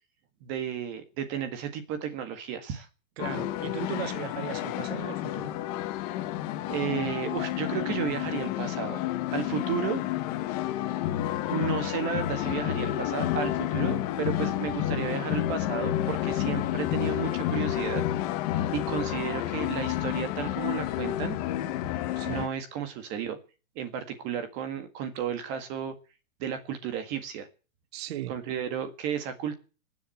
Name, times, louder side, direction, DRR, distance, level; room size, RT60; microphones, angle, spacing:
voice 1, 0.4-2.9 6.7-9.0 9.3-10.0 11.5-18.0 18.7-21.4 22.2-23.4 23.8-25.9 26.4-27.5 28.3-29.6, right 8 dB, 25° right, 1.8 m, -33 dB
sound 1, 3.2-22.5, left 13 dB, 30° left, 1.2 m, -30 dB
voice 2, 3.2-5.5 22.2-22.5 27.9-28.4, right 13 dB, 50° right, 1.0 m, -37 dB
19.5 x 7.6 x 9.2 m
supercardioid pair, 170°, 41 cm